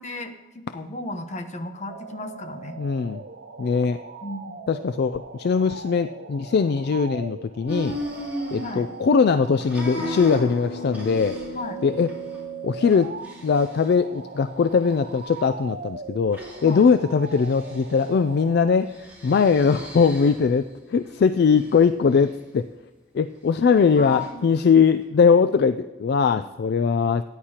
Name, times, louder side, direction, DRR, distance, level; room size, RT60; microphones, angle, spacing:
voice 1, 0.0-2.8 4.2-4.5 8.6-8.9 11.5-11.8 16.6-16.8 24.0-24.4 26.4-26.5, left 3 dB, 40° left, 6 dB, 1.0 m, -34 dB
sound 1, 1.9-18.7, right 5 dB, 60° right, 0.5 m, -40 dB
voice 2, 2.8-3.2 3.6-4.0 4.7-8.0 8.5-11.4 11.8-12.1 12.6-13.1 13.4-22.7 23.1-27.2, left 5 dB, 60° left, 10 dB, 0.3 m, -21 dB
sound 2, 7.7-9.3 9.6-11.7 12.1-12.4 12.8-13.9 14.6-15.4 16.3-16.9 17.3-18.0 18.9-20.6 21.1-21.8 23.6-24.3, equal, 10° right, 3.7 m, -37 dB
Acoustic guitar, 10.0-15.2, left 3 dB, 90° left, 1.9 m, -40 dB
17.5 x 10.0 x 2.9 m, 1.2 s
head